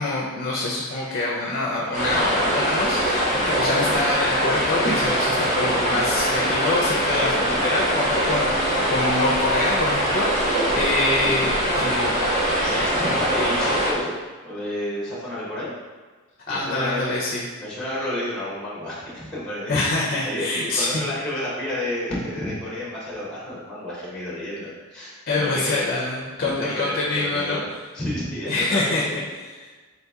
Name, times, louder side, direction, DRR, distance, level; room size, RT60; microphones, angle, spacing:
voice 1, 0.0-12.2 16.5-17.4 19.7-21.1 25.3-27.6 28.5-29.0 29.3-29.7, left 2 dB, 40° left, -3 dB, 0.5 m, -25 dB
sound 1, 1.9-13.9, equal, 35° right, 0.9 m, -22 dB
voice 2, 12.6-14.2 14.4-15.7 16.5-17.0 17.6-19.8 20.0-25.9 26.4-27.6 27.9-29.2, left 1 dB, 5° left, -6 dB, 0.8 m, -30 dB
4.1 x 2.8 x 3.4 m, 1.4 s
head